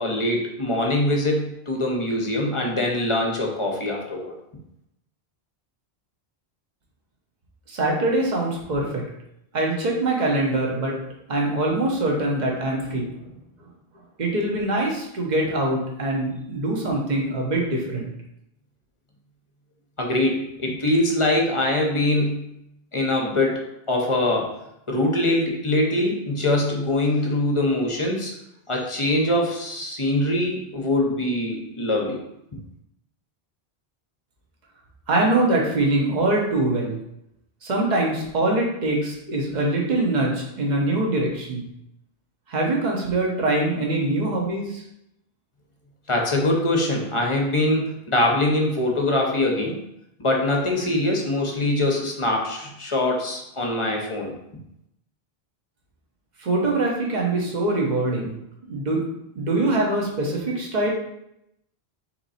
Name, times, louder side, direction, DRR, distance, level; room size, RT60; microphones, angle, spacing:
voice 1, 0.0-4.3 20.0-22.4 22.9-24.5 24.9-28.3 28.7-32.2 46.1-49.8 50.2-54.3, left 1 dB, 35° left, 0 dB, 0.7 m, -23 dB
voice 2, 7.7-9.0 9.5-10.9 11.3-13.3 14.2-18.1 35.1-37.0 37.6-41.7 42.5-44.8 56.4-58.3 58.7-59.0 59.3-60.9, right 2 dB, 45° right, -1 dB, 1.0 m, -23 dB
3.8 x 3.0 x 4.1 m, 0.81 s
omnidirectional pair, 1.0 m